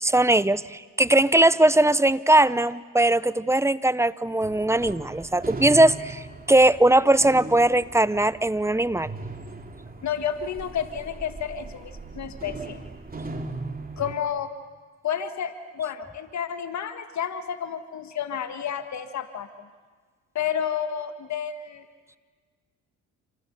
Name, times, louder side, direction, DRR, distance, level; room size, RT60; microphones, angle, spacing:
voice 1, 0.0-6.2 6.5-9.1, right 1 dB, 10° right, 17 dB, 0.9 m, -20 dB
sound 1, 4.4-14.2, right 3 dB, 30° right, 3.1 m, -38 dB
voice 2, 10.0-12.8 14.0-14.5 15.0-19.5 20.4-21.8, left 8 dB, 60° left, 9 dB, 1.8 m, -30 dB
28.5 x 26.0 x 6.9 m, 1.5 s
supercardioid pair, 60°, 32 cm